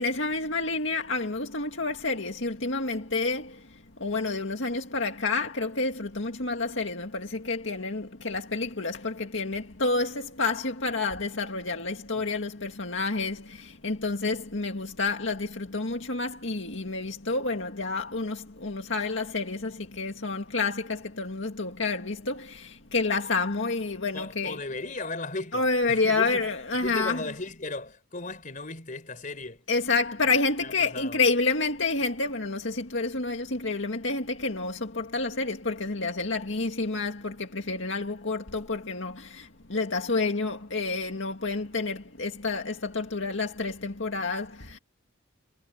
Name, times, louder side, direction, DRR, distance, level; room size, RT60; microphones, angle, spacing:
voice 1, 0.0-3.6 4.0-24.6 25.5-27.3 29.7-44.8, left 3 dB, 65° left, 2.1 m, -29 dB
voice 2, 24.1-26.5 26.8-29.7 30.6-31.2, left 2 dB, 40° left, 4.3 m, -36 dB
head